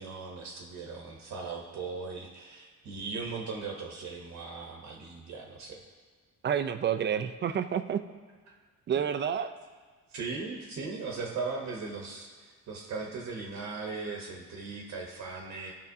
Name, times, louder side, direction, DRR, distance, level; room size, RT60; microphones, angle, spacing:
voice 1, 0.0-5.8 8.9-9.0 10.1-15.7, right 4 dB, 70° right, 0 dB, 1.1 m, -38 dB
voice 2, 6.4-8.0 8.9-9.5, right 8 dB, 35° right, 10 dB, 0.4 m, -29 dB
12.0 x 5.2 x 2.7 m, 1.5 s
cardioid pair, 90°, 30 cm